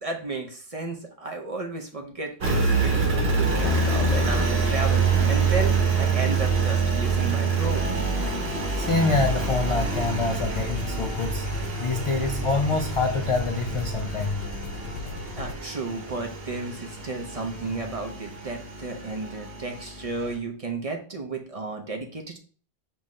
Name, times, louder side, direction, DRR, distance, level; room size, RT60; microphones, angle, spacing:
voice 1, 0.0-8.0 15.4-22.4, right 3 dB, 40° right, 3 dB, 0.6 m, -33 dB
Engine, 2.4-20.4, right 4 dB, 70° right, 1.2 m, -26 dB
voice 2, 8.8-14.4, left 3 dB, 55° left, 4 dB, 0.3 m, -26 dB
sound 1, 9.4-15.5, left 4 dB, 75° left, 0.8 m, -36 dB
5.5 x 2.6 x 3.1 m, 0.41 s
omnidirectional pair, 1.0 m